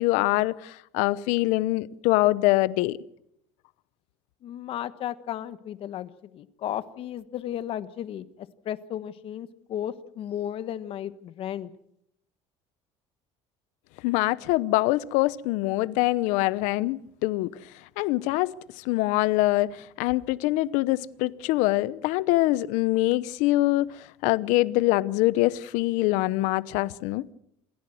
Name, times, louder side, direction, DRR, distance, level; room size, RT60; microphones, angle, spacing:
voice 1, 0.0-3.0 14.0-17.5 18.0-27.3, left 18 dB, 85° left, 0.9 m, -24 dB
voice 2, 4.4-11.7, left 11 dB, 50° left, 1.3 m, -34 dB
27.0 x 15.5 x 7.9 m
cardioid pair, 140°, 12 cm